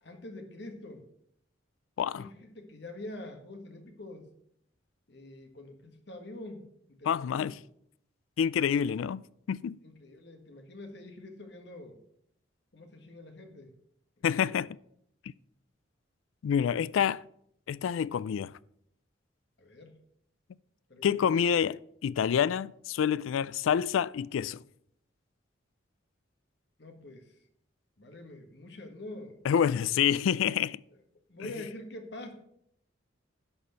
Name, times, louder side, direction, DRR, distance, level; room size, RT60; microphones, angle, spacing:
voice 1, 0.0-1.0 2.1-4.3 5.1-7.5 9.8-12.0 12.7-13.7 14.2-14.6 19.6-19.9 20.9-21.2 26.8-27.3 28.0-29.4 29.8-30.1 31.3-32.3, left 2 dB, 60° left, 1.5 m, -45 dB
voice 2, 2.0-2.3 7.0-7.5 8.4-9.2 9.5-9.8 14.2-14.7 16.4-17.2 17.7-18.5 21.0-24.6 29.4-30.8, left 8 dB, 90° left, 0.3 m, -27 dB
11.0 x 4.3 x 6.8 m
head